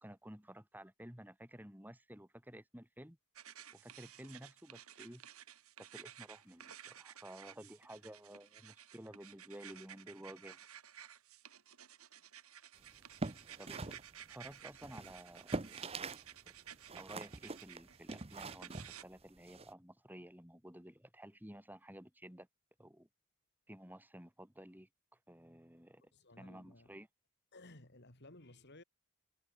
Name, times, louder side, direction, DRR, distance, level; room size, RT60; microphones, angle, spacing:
voice 1, 0.0-3.2 3.7-5.2 5.8-10.6 13.6-14.0 14.3-15.9 17.0-22.5 22.8-23.1 23.7-26.1 26.4-27.1, right 1 dB, 10° right, 4.9 m, -53 dB
sound 1, 3.4-19.0, right 10 dB, 80° right, 3.3 m, -55 dB
sound 2, 13.0-16.3 16.5-19.7, right 3 dB, 25° right, 0.9 m, -44 dB
voice 2, 13.6-14.0 26.1-26.9 27.5-28.8, left 2 dB, 50° left, 3.1 m, -57 dB
head